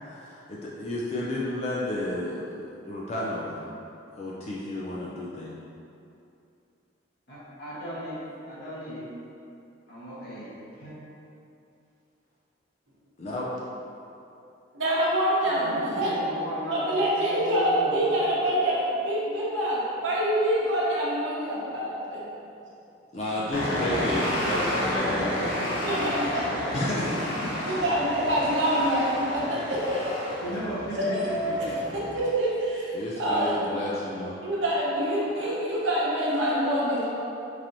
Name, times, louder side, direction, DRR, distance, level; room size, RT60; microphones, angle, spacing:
voice 1, 0.0-2.5 2.9-3.7 4.2-5.6 13.2-13.5 22.0-22.1 23.1-25.3 26.7-27.3 27.6-27.8 32.9-34.4, left 1 dB, 35° left, -5 dB, 0.3 m, -32 dB
voice 2, 7.3-8.2 8.4-9.1 9.9-10.9 15.4-18.2 23.3-26.6 26.9-27.8 28.3-28.4 30.4-31.8, equal, 55° left, -10 dB, 1.2 m, -36 dB
voice 3, 14.8-16.2 16.6-22.3 25.9-26.6 27.6-30.4 31.0-31.7 31.9-33.9 34.4-37.1, right 1 dB, 75° right, -6 dB, 0.9 m, -26 dB
sound 1, 23.5-32.2, equal, 90° left, 0.9 m, -31 dB
4.6 x 2.8 x 2.6 m, 2.7 s
head